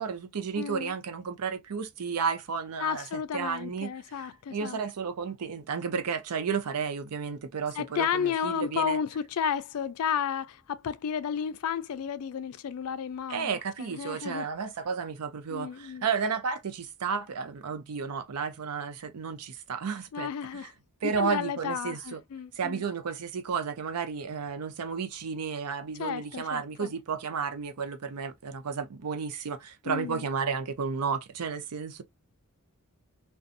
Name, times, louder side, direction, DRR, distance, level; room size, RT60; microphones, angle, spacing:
voice 1, 0.0-3.9 4.2-9.0 13.3-20.7 21.0-22.2 22.6-32.0, right 6 dB, 90° right, 0.5 m, -32 dB
voice 2, 0.5-0.9 2.8-4.8 7.7-14.5 15.5-16.1 20.1-20.7 21.0-22.8 26.0-26.9 29.9-30.3, left 7 dB, 70° left, 0.4 m, -32 dB
2.5 x 2.2 x 2.4 m
head